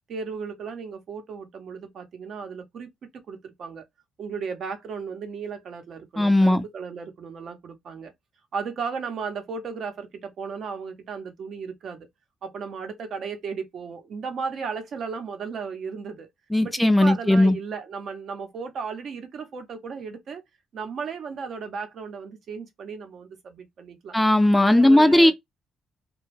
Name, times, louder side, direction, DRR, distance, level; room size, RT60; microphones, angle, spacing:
voice 1, 0.1-2.9 3.3-3.8 4.2-8.1 8.5-12.1 12.4-16.3 16.6-20.4 20.7-24.2 24.5-25.3, right 5 dB, 60° right, 0.7 m, -35 dB
voice 2, 6.2-6.6 16.5-17.6 24.1-25.3, left 1 dB, 5° left, 0.4 m, -17 dB
2.2 x 2.0 x 3.1 m
cardioid pair, 90°, 0 cm